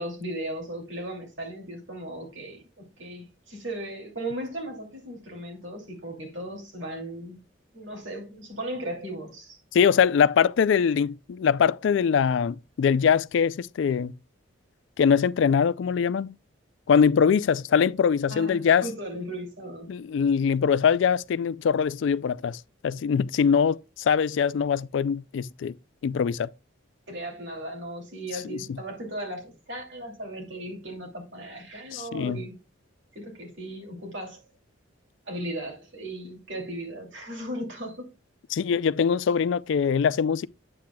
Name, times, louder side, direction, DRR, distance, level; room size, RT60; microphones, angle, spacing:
voice 1, 0.0-7.4 7.7-9.6 18.3-19.9 27.1-32.6 33.1-34.4 35.2-38.1, right 1 dB, 70° right, 2.6 m, -36 dB
voice 2, 9.7-14.1 15.0-16.3 16.9-18.8 19.9-25.7 26.0-26.5 28.5-28.6 31.9-32.4 38.5-40.5, left 7 dB, 65° left, 0.3 m, -23 dB
8.7 x 7.7 x 2.2 m
head